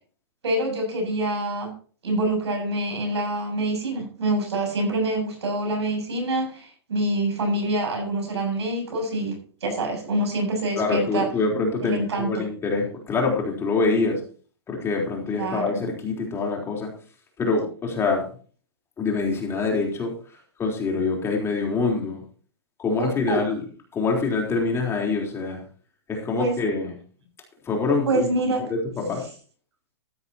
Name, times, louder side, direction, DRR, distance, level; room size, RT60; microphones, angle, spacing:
voice 1, 0.4-1.7 2.0-11.3 11.8-12.4 15.3-15.7 22.9-23.4 26.4-26.6 28.1-28.7, right 1 dB, 75° right, 3 dB, 7.4 m, -26 dB
voice 2, 10.8-14.2 14.7-16.9 17.4-18.3 19.0-20.1 20.6-22.2 22.8-23.6 23.9-25.6 26.1-27.0 27.7-28.3 28.6-29.2, left 3 dB, 20° left, 0 dB, 3.7 m, -25 dB
14.0 x 12.5 x 2.9 m, 0.40 s
hypercardioid pair, 130°, 14 cm